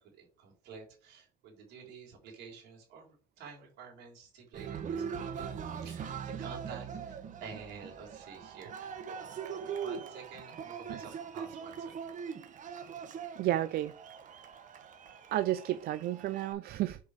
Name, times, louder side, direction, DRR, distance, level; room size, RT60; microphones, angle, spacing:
voice 1, 0.2-9.2 9.5-11.9, right 5 dB, 90° right, 3.6 m, -50 dB
Cheering, 4.5-16.5, right 7 dB, 50° right, 1.3 m, -41 dB
voice 2, 13.4-13.9 15.3-17.0, right 13 dB, 70° right, 0.5 m, -31 dB
6.6 x 5.1 x 4.9 m
cardioid pair, 110°, 17 cm